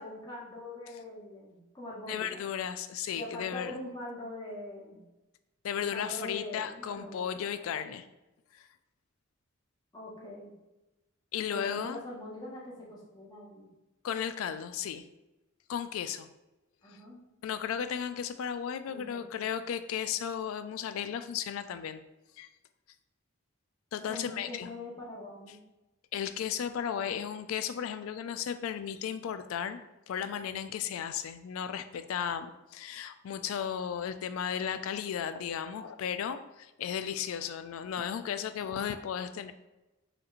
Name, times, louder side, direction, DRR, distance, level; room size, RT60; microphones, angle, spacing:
voice 1, 0.0-2.4 3.1-5.1 5.7-7.7 9.9-10.5 11.4-13.7 16.8-17.2 18.9-19.3 24.1-25.6 26.9-27.2, left 1 dB, 20° left, -5 dB, 1.0 m, -43 dB
voice 2, 2.1-3.8 5.6-8.1 8.5-8.7 11.3-12.0 14.0-15.0 15.7-16.3 17.4-22.0 22.4-22.5 23.9-24.7 26.1-39.5, left 8 dB, 90° left, 11 dB, 0.3 m, -35 dB
5.0 x 3.0 x 2.5 m, 1.0 s
head